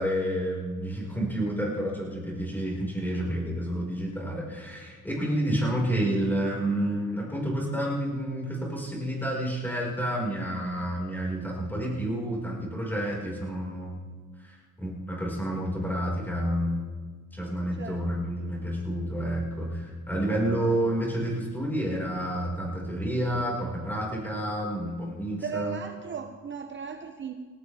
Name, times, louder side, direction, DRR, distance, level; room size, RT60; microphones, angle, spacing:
voice 1, 0.0-14.0 14.4-16.8 17.3-25.8, right 1 dB, 5° left, -4 dB, 5.2 m, -29 dB
voice 2, 17.8-18.2 25.4-27.3, right 6 dB, 35° right, 5 dB, 0.8 m, -36 dB
19.5 x 18.0 x 3.5 m, 1.5 s
cardioid pair, 125°, 32 cm